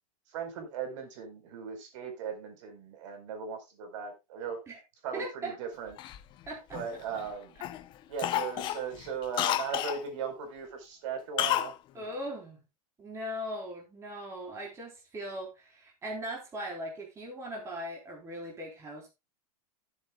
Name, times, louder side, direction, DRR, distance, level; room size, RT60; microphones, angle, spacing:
voice 1, 0.3-4.6 5.0-6.0 6.7-7.6 8.1-11.7, right 6 dB, 55° right, 4.6 m, -38 dB
voice 2, 5.1-5.5 6.5-6.8 11.9-12.6 13.0-19.1, equal, 15° right, 3.9 m, -39 dB
Cough, 6.0-7.2 7.6-7.8 8.2-10.0 11.4-11.7 12.0-12.1, left 13 dB, 25° left, 0.8 m, -31 dB
16.0 x 7.9 x 2.4 m
supercardioid pair, 165°, 19 cm